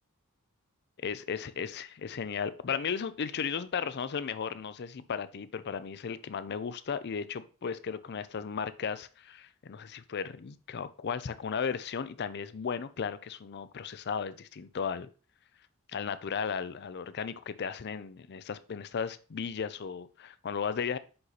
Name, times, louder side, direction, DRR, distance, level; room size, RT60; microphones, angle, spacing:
voice 1, 1.0-15.1 15.9-21.0, left 6 dB, 50° left, 14 dB, 0.5 m, -35 dB
5.7 x 5.5 x 4.0 m, 0.37 s
head